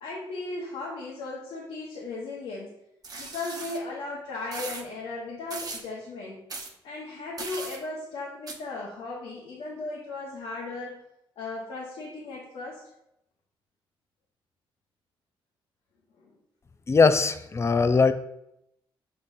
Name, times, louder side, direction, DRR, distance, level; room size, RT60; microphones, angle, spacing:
voice 1, 0.0-2.7 3.2-6.4 6.8-11.0 11.4-12.8 16.2-16.3, left 3 dB, 85° left, -5 dB, 1.3 m, -36 dB
sound 1, 3.0-3.8 4.5-4.8 5.5-5.8 6.5-6.7 7.4-7.8 8.5-8.6, right 3 dB, 40° right, 1.0 m, -37 dB
voice 2, 16.9-18.1, left 4 dB, 30° left, 10 dB, 0.5 m, -20 dB
6.8 x 5.2 x 2.7 m, 0.79 s
cardioid pair, 90°, 10 cm